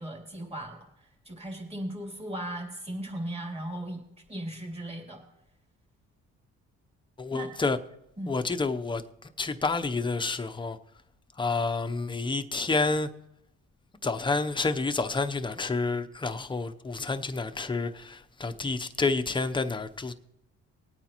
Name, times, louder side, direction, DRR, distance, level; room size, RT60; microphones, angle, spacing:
voice 1, 0.0-4.0 4.3-5.2 7.3-7.5 8.2-8.3, right 1 dB, 20° right, 2.9 m, -37 dB
voice 2, 7.2-7.8 8.3-10.8 11.4-13.1 14.0-20.1, left 3 dB, 15° left, 0.7 m, -29 dB
19.5 x 9.0 x 3.0 m
cardioid pair, 90°, 30 cm